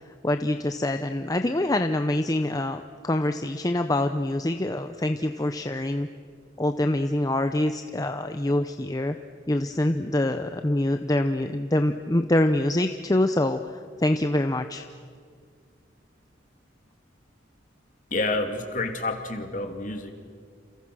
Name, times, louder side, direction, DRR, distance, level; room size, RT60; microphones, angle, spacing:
voice 1, 0.2-6.1 6.6-9.2 9.5-13.6 14.0-14.8, left 1 dB, 20° left, 7 dB, 0.7 m, -25 dB
voice 2, 18.1-20.1, left 2 dB, 45° left, 5 dB, 2.8 m, -29 dB
29.0 x 28.5 x 6.3 m, 2.1 s
head